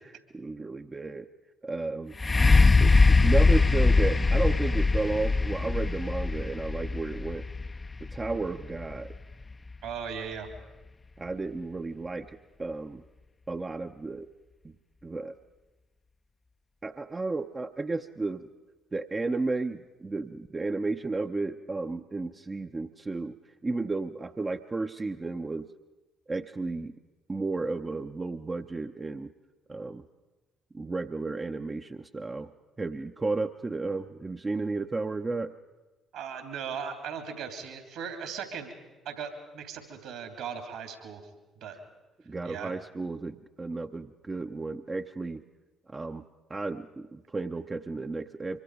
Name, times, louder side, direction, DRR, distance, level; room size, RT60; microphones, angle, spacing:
voice 1, 0.3-1.3 1.6-2.1 2.8-7.5 8.0-9.2 11.2-13.0 13.5-14.3 15.0-15.4 16.8-18.5 18.9-23.4 23.6-25.7 26.3-26.9 27.3-29.3 29.7-30.0 30.7-32.5 32.8-35.5 42.3-45.4 45.9-46.2 46.5-48.6, right 3 dB, 25° right, 6 dB, 0.8 m, -33 dB
sound 1, 2.2-9.9 10.6-10.7, left 3 dB, 25° left, 0.6 m, -22 dB
voice 2, 9.8-10.5 36.1-38.7 39.0-41.2 41.6-41.8 42.4-42.7, right 7 dB, 70° right, 6 dB, 3.3 m, -38 dB
24.5 x 24.0 x 5.0 m, 1.2 s
hypercardioid pair, 45°, 0 cm